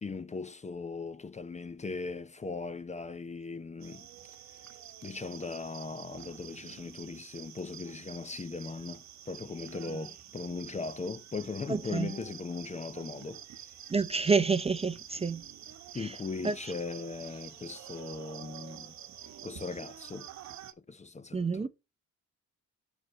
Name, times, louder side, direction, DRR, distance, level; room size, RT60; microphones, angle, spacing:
voice 1, 0.0-4.1 5.0-13.4 15.9-18.9 19.4-20.3 20.9-21.7, left 4 dB, 25° left, 0.6 m, -39 dB
sound 1, 3.8-20.7, right 10 dB, 65° right, 1.0 m, -48 dB
voice 2, 11.7-12.1 13.9-15.4 16.0-16.1 16.4-16.5 21.3-21.7, right 4 dB, 20° right, 0.6 m, -28 dB
6.2 x 4.7 x 6.4 m
cardioid pair, 90°, 30 cm